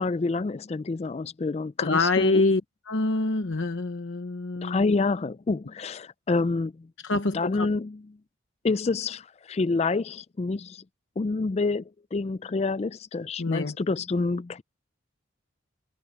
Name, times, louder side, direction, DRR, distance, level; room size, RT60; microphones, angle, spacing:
voice 1, 0.0-2.4 4.6-8.0 8.6-10.8 11.2-11.8 12.1-14.6, left 3 dB, 30° left, 0.3 m, -28 dB
voice 2, 1.8-2.6 2.9-4.8 7.0-7.7 13.4-13.8, left 3 dB, 70° left, 0.9 m, -25 dB
head